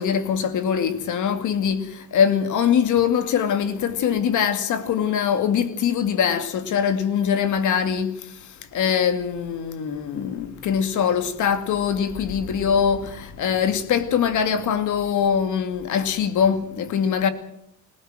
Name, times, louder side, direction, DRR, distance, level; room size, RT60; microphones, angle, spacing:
voice 1, 0.0-17.3, left 7 dB, 80° left, 2.4 m, -23 dB
25.0 x 17.5 x 7.7 m
cardioid pair, 90°, 30 cm